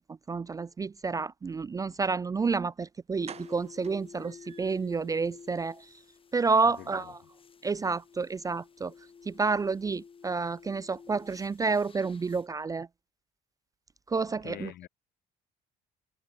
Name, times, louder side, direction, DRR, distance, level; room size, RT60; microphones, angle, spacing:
voice 1, 0.0-5.9 6.3-7.2 7.6-8.9 9.2-12.9 14.1-14.7, right 4 dB, 20° right, 0.4 m, -30 dB
sound 1, 2.6-2.7 3.2-5.0 5.4-5.5 5.9-6.0 6.3-6.4, right 8 dB, 40° right, 0.9 m, -49 dB
sound 2, 3.2-12.5, left 6 dB, 30° left, 3.2 m, -51 dB
voice 2, 6.6-7.1 14.4-14.9, left 14 dB, 70° left, 4.1 m, -45 dB
cardioid pair, 110°, 17 cm